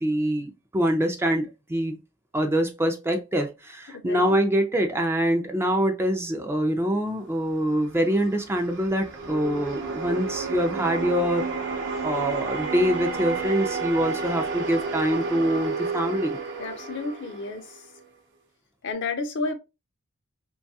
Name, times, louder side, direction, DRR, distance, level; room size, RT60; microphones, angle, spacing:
voice 1, 0.0-2.0 2.3-11.5 12.0-16.4, equal, 10° right, 0.4 m, -25 dB
voice 2, 3.9-4.4 16.6-17.8 18.8-19.5, left 3 dB, 55° left, 0.6 m, -31 dB
sound 1, 7.7-18.1, right 4 dB, 55° right, 0.6 m, -31 dB
3.0 x 2.3 x 2.7 m
head